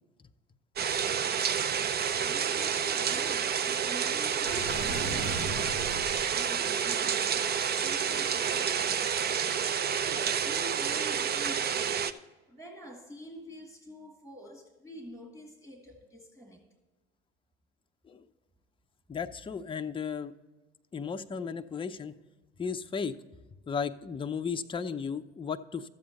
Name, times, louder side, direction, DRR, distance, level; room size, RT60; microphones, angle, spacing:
sound 1, 0.8-12.1, right 7 dB, 30° right, 0.6 m, -29 dB
voice 1, 2.1-9.1 9.5-12.1 12.5-16.7, equal, 5° right, 1.7 m, -47 dB
Water / Sink (filling or washing), 4.4-6.2, right 1 dB, 85° right, 2.5 m, -36 dB
voice 2, 19.1-20.3 20.9-22.1 22.6-23.2 23.7-25.9, left 6 dB, 15° left, 0.6 m, -35 dB
12.5 x 7.7 x 4.1 m
hypercardioid pair, 70°, 31 cm